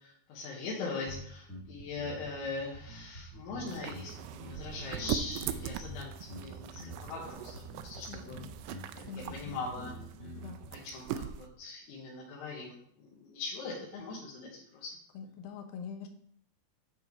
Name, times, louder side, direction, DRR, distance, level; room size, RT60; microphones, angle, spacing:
voice 1, 0.0-10.3 10.7-15.0, left 3 dB, 90° left, -5 dB, 3.4 m, -41 dB
sound 1, 1.1-10.7, equal, 35° left, 1.2 m, -47 dB
sound 2, 3.7-11.5, right 11 dB, 85° right, 2.5 m, -41 dB
voice 2, 8.1-8.5 9.1-9.5 10.4-10.6 15.1-16.1, left 6 dB, 70° left, 4 dB, 2.5 m, -44 dB
10.0 x 3.8 x 4.5 m, 0.64 s
omnidirectional pair, 4.6 m